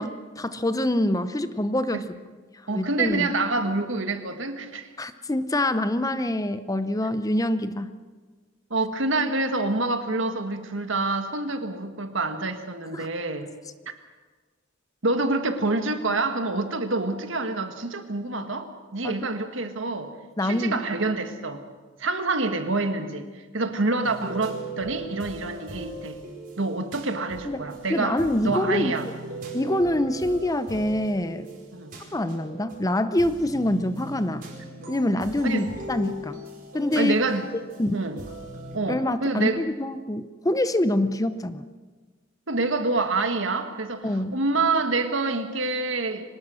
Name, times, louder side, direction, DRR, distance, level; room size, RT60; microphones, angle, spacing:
voice 1, 0.0-2.1 2.7-3.3 5.0-7.9 12.9-13.1 19.0-19.1 20.4-20.7 27.4-27.6 27.9-29.1 29.5-31.5 32.1-34.5 34.9-36.4 36.7-37.2 37.8-37.9 38.9-41.6 44.0-44.3, left 1 dB, 15° left, 12 dB, 0.7 m, -25 dB
voice 2, 2.7-4.9 8.7-13.5 15.0-20.1 20.4-21.6 22.0-26.2 26.6-29.1 31.7-32.0 35.4-35.7 37.0-37.5 37.9-38.2 38.7-39.6 42.5-46.2, right 3 dB, 65° right, 7 dB, 1.8 m, -27 dB
sound 1, 24.0-38.8, right 2 dB, 45° right, 5.1 m, -40 dB
24.0 x 19.5 x 6.4 m, 1.4 s
head